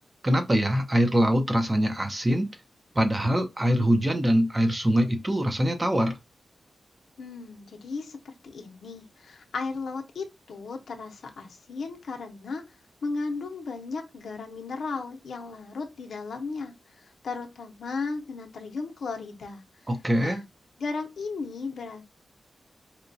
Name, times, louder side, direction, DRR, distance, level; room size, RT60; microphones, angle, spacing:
voice 1, 0.2-2.5 3.0-6.1 19.9-20.4, equal, 20° right, 0.6 m, -23 dB
voice 2, 7.2-12.6 13.0-16.7 17.2-19.6 20.2-20.4 20.8-22.0, left 4 dB, 80° left, 0.7 m, -35 dB
4.2 x 2.2 x 2.6 m
wide cardioid pair, 120°, 0 cm